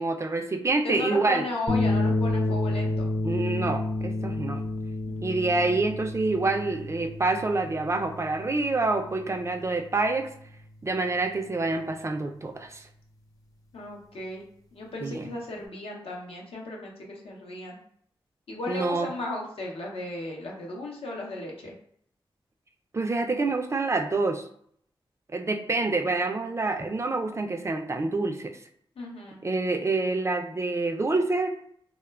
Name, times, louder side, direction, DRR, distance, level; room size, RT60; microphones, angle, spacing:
voice 1, 0.0-1.4 3.2-4.6 5.2-10.3 10.8-12.9 15.0-15.3 18.7-19.1 22.9-24.4 25.3-28.6 29.4-31.6, right 3 dB, 30° right, 5 dB, 0.3 m, -27 dB
voice 2, 0.8-3.1 5.1-5.3 13.7-14.5 14.7-17.8 18.5-21.7 29.0-29.4, left 1 dB, 85° left, -1 dB, 0.6 m, -35 dB
sound 1, 1.7-10.2, left 2 dB, 35° left, 0.5 m, -30 dB
2.9 x 2.1 x 2.2 m, 0.65 s
cardioid pair, 60°, 10 cm